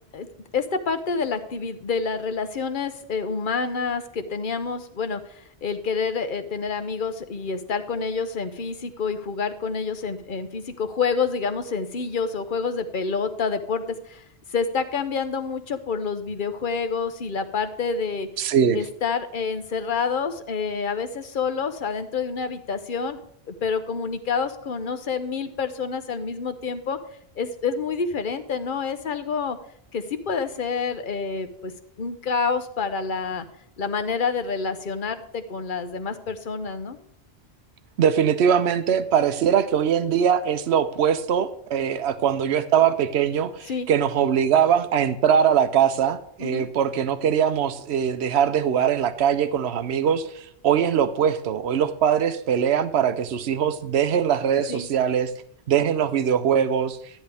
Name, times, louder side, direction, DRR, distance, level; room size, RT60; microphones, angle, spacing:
voice 1, 0.5-14.2 14.5-18.3 18.7-23.2 23.5-27.0 27.4-29.6 29.9-31.7 32.0-33.4 33.8-37.0 43.7-43.9 46.4-46.7 54.7-54.9, left 5 dB, 50° left, 9 dB, 1.0 m, -28 dB
voice 2, 18.4-18.8 38.0-55.3 55.7-57.0, right 8 dB, 75° right, 12 dB, 1.0 m, -22 dB
13.0 x 10.0 x 3.5 m, 0.69 s
omnidirectional pair, 1.1 m